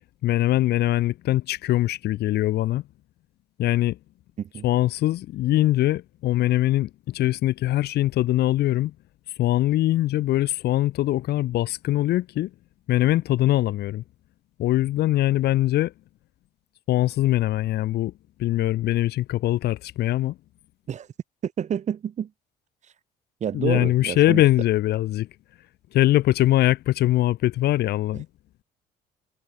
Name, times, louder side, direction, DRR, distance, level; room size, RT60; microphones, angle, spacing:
voice 1, 0.2-2.8 3.6-4.0 4.6-8.9 9.4-12.5 12.9-14.0 14.6-15.9 16.9-18.1 18.4-20.4 23.5-25.3 25.9-28.3, left 15 dB, 75° left, 4.4 m, -22 dB
voice 2, 21.4-22.3 23.4-24.4 28.1-28.2, right 8 dB, 45° right, 1.3 m, -29 dB
cardioid pair, 110°, 17 cm